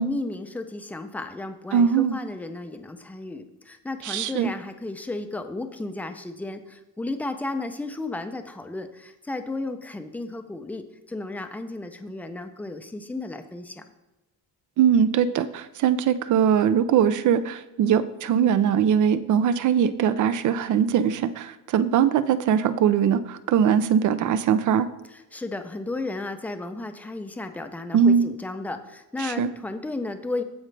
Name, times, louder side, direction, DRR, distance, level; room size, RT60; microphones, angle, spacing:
voice 1, 0.0-13.8 25.1-30.4, left 2 dB, 5° left, 8 dB, 0.5 m, -34 dB
voice 2, 1.7-2.2 4.1-4.5 14.8-24.9 27.9-28.3 29.2-29.5, right 8 dB, 60° right, 14 dB, 0.6 m, -21 dB
15.0 x 5.0 x 3.3 m, 1.0 s
cardioid pair, 160°, 33 cm